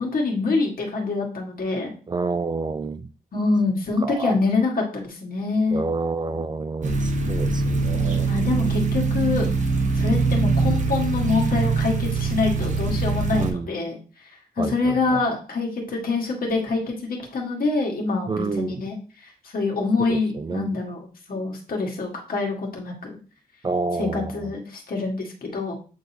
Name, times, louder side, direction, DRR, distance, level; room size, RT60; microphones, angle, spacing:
voice 1, 0.0-1.9 3.3-5.8 8.2-9.5 10.0-14.0 14.6-19.0 19.5-23.2 24.0-25.7, left 3 dB, 65° left, 0 dB, 1.9 m, -25 dB
voice 2, 2.1-3.1 4.0-4.4 5.7-8.3 13.3-13.7 14.6-15.2 18.3-18.8 20.0-20.8 23.6-24.5, right 4 dB, 25° right, 12 dB, 0.3 m, -29 dB
sound 1, 6.8-13.5, right 4 dB, 50° right, 1.1 m, -23 dB
8.3 x 4.0 x 2.9 m, 0.37 s
wide cardioid pair, 115°, 16 cm